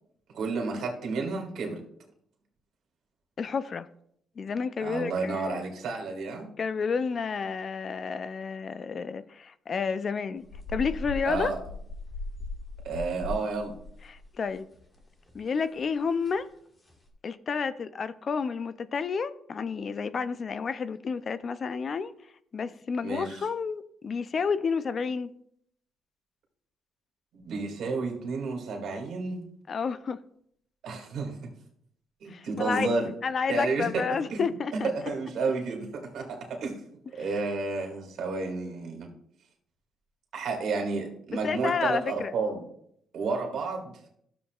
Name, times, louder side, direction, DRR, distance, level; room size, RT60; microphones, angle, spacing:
voice 1, 0.3-1.8 4.8-6.5 11.3-11.6 12.8-13.7 23.0-23.4 27.4-29.5 30.8-31.5 32.2-33.1 33.5-34.0 34.3-34.4 34.7-34.8 35.1-36.8 37.2-39.1 40.3-42.6 43.1-44.0, right 3 dB, 70° right, 2.2 m, -31 dB
voice 2, 3.4-3.9 4.4-5.6 6.6-11.5 14.1-14.7 15.3-16.5 17.2-22.1 22.5-25.3 29.7-30.2 32.3-32.9 33.2-34.9 41.4-42.3, left 5 dB, 45° left, 0.4 m, -30 dB
sound 1, 10.4-15.0 15.3-15.4 15.8-15.9 16.3-16.4 16.9-17.1, left 2 dB, 30° left, 1.8 m, -39 dB
12.5 x 7.2 x 2.4 m
cardioid pair, 90°, 0 cm